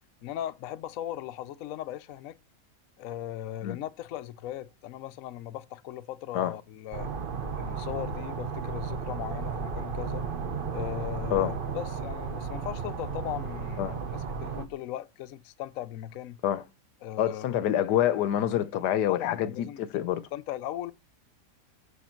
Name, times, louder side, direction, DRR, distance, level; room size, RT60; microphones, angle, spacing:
voice 1, 0.2-2.4 3.0-7.1 7.6-10.2 10.7-16.4 17.0-17.4 19.1-20.0 20.3-20.9, left 12 dB, 65° left, 0.9 m, -38 dB
sound 1, 6.9-14.7, right 5 dB, 40° right, 0.8 m, -34 dB
voice 2, 17.2-20.2, left 11 dB, 80° left, 1.3 m, -27 dB
8.6 x 6.4 x 4.4 m
omnidirectional pair, 1.8 m